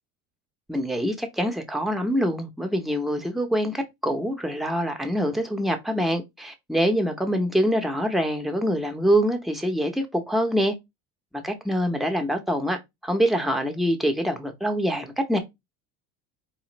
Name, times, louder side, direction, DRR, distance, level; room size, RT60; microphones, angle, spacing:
voice 1, 0.7-10.7 11.4-12.8 13.0-15.4, equal, ahead, 0.7 m, -25 dB
4.2 x 2.4 x 2.9 m
supercardioid pair, 110°, 40 cm